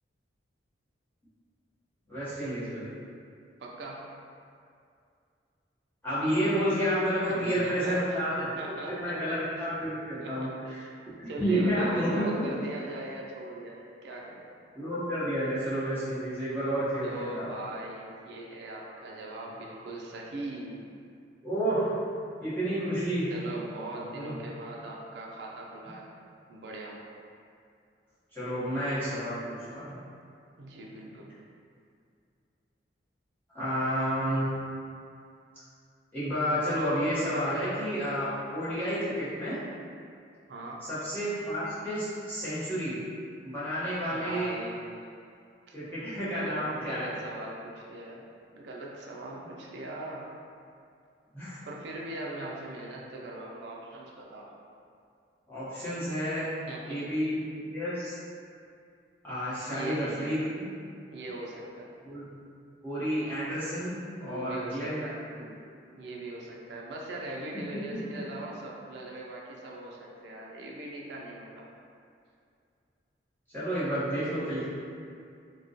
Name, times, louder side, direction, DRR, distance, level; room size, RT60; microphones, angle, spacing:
voice 1, 2.1-2.9 6.0-10.8 11.2-12.5 14.7-17.5 21.4-22.0 22.4-23.3 24.1-24.4 28.3-30.0 33.5-34.5 36.1-39.6 40.9-43.0 43.4-44.5 45.7-47.1 51.3-51.6 55.5-56.5 56.8-58.2 59.2-60.7 62.0-62.4 62.8-65.5 67.7-68.2 73.5-74.7, equal, 10° left, -14 dB, 0.7 m, -30 dB
voice 2, 3.6-4.1 7.3-9.3 10.2-10.9 11.3-14.4 17.0-20.9 23.3-26.1 26.5-26.9 30.6-31.3 40.5-40.8 44.1-45.1 45.7-45.8 46.3-48.3 48.5-50.3 51.7-54.6 56.7-57.0 59.7-60.4 61.1-61.9 64.2-65.2 65.9-71.7, right 2 dB, 65° right, -3 dB, 0.4 m, -40 dB
2.3 x 2.1 x 2.6 m, 2.4 s
head